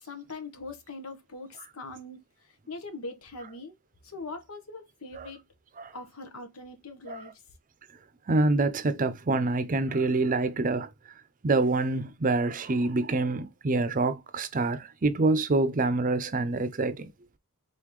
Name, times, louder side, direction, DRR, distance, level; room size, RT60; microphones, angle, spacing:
voice 1, 0.0-2.2 2.7-3.7 4.0-5.4 5.9-7.3, left 3 dB, 85° left, 1.1 m, -41 dB
voice 2, 8.3-10.9 11.4-17.1, right 3 dB, 40° right, 0.6 m, -26 dB
4.0 x 3.8 x 3.0 m
head